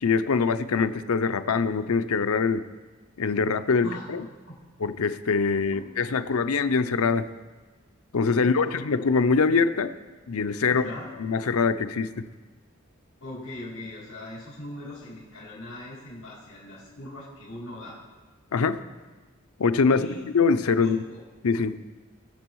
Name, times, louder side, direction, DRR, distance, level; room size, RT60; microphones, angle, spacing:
voice 1, 0.0-2.6 3.2-4.2 4.8-7.2 8.1-9.9 10.3-10.8 11.2-12.2 18.5-18.8 19.6-20.1 20.3-21.0 21.4-21.8, left 5 dB, 85° left, 11 dB, 0.6 m, -23 dB
voice 2, 8.4-8.8 10.7-11.1 13.2-18.0 19.9-20.2 20.8-21.2, left 1 dB, 65° left, -12 dB, 4.5 m, -40 dB
20.0 x 6.9 x 4.7 m, 1.3 s
head